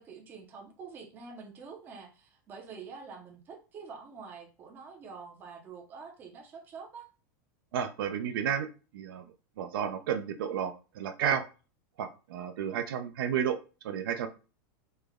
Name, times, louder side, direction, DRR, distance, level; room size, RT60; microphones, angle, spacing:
voice 1, 0.0-7.1, right 5 dB, 15° right, 1 dB, 0.5 m, -46 dB
voice 2, 7.7-8.7 8.9-9.2 9.6-11.4 12.0-13.6 13.8-14.3, right 8 dB, 80° right, 7 dB, 0.5 m, -31 dB
3.2 x 2.0 x 3.5 m, 0.33 s
supercardioid pair, 175°, 12 cm